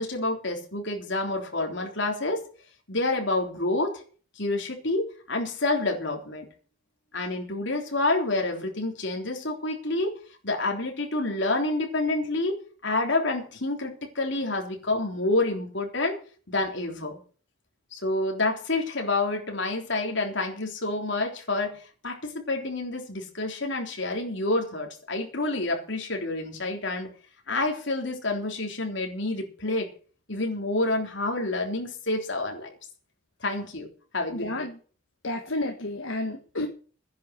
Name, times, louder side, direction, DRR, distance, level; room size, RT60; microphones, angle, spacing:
voice 1, 0.0-2.4 2.9-4.0 4.4-6.5 7.1-10.1 10.4-16.2 16.5-17.2 17.9-27.1 27.5-29.9 30.3-32.8 33.4-33.9 34.1-34.5, left 2 dB, 60° left, 2 dB, 3.6 m, -28 dB
voice 2, 34.3-34.8 35.2-36.7, left 2 dB, 75° left, 4 dB, 1.6 m, -31 dB
13.5 x 10.5 x 6.6 m, 0.42 s
head